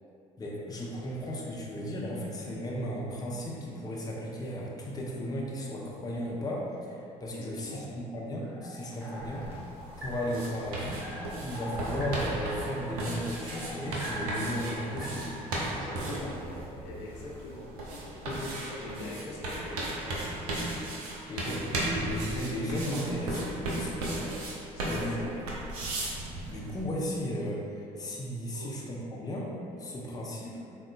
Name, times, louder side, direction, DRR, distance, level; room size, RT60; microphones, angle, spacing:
voice 1, 0.4-9.5 10.0-11.0 11.4-15.4 18.2-18.5 21.3-24.3 24.9-25.3 26.5-29.5 29.8-30.6, equal, 20° left, -3 dB, 0.5 m, -35 dB
voice 2, 7.3-7.9 15.7-20.8 24.7-25.4 28.5-28.7, left 1 dB, 70° left, -4 dB, 0.5 m, -43 dB
sound 1, 8.4-15.9, equal, 15° right, 1.1 m, -42 dB
sound 2, 9.2-26.8, right 1 dB, 85° right, 0.4 m, -36 dB
3.6 x 2.2 x 2.2 m, 2.6 s
hypercardioid pair, 55°, 19 cm